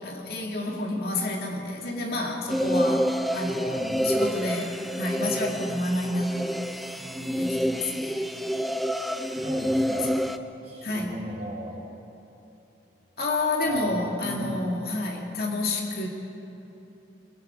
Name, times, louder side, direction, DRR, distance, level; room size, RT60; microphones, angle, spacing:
voice 1, 0.0-6.6 7.3-8.3 10.8-11.2 13.2-16.1, left 2 dB, 55° left, 0 dB, 2.4 m, -29 dB
sound 1, 2.5-10.4, equal, ahead, 0.5 m, -28 dB
voice 2, 3.4-4.1 5.2-5.7 7.0-7.9 9.4-10.2 10.6-11.8 13.6-14.6, equal, 35° right, -2 dB, 4.4 m, -37 dB
24.0 x 23.0 x 4.7 m, 2.9 s
head